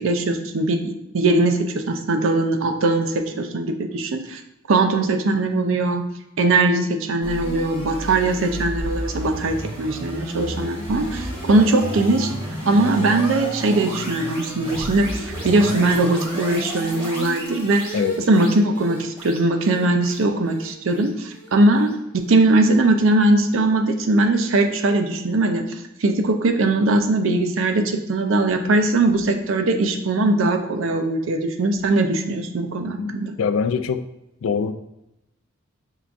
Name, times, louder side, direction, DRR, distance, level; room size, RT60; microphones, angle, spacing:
voice 1, 0.0-4.4 4.7-6.1 6.4-12.3 12.7-18.0 18.3-33.3, right 2 dB, 65° right, 0.5 m, -20 dB
sound 1, 7.2-22.4, right 1 dB, 25° right, 1.5 m, -32 dB
voice 2, 17.9-18.3 33.0-33.1 33.4-34.0 34.4-34.7, left 6 dB, 65° left, 0.3 m, -23 dB
5.5 x 2.5 x 3.4 m
head